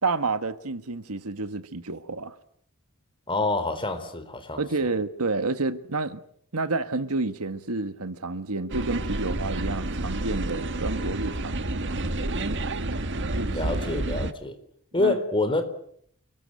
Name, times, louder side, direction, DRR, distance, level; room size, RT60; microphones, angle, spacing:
voice 1, 0.0-2.4 4.6-6.2 6.5-11.7 13.3-13.5 15.0-15.2, right 3 dB, 80° right, 1.6 m, -29 dB
voice 2, 3.3-4.9 13.5-14.6 14.9-15.6, left 2 dB, 25° left, 4.0 m, -27 dB
sound 1, 8.7-14.3, right 2 dB, 55° right, 1.6 m, -29 dB
29.5 x 21.0 x 9.2 m
head